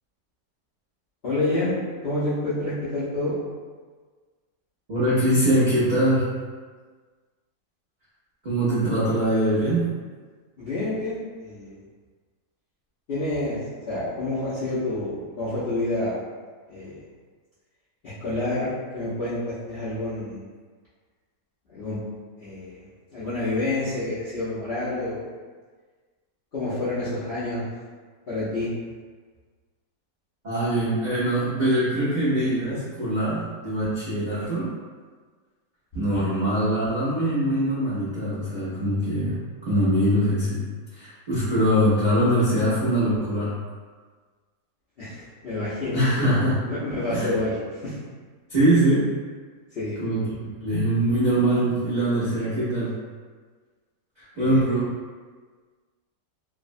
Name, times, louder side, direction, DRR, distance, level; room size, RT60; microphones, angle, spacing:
voice 1, 1.2-1.7 2.0-3.3 10.6-11.7 13.1-13.6 13.9-16.1 16.7-16.9 18.0-20.4 21.7-22.0 22.4-22.9 23.1-25.2 26.5-27.6 28.3-28.7 45.0-46.4 46.7-48.0 49.8-50.0 54.4-54.7, left 2 dB, 70° left, -12 dB, 0.5 m, -28 dB
voice 2, 4.9-6.2 8.4-9.8 30.4-34.7 35.9-40.6 40.9-43.5 45.9-46.6 47.1-47.3 48.5-49.1 50.0-50.2 50.6-52.9 54.2-54.8, right 1 dB, 70° right, -12 dB, 0.4 m, -22 dB
3.2 x 2.0 x 2.5 m, 1.5 s
omnidirectional pair, 1.9 m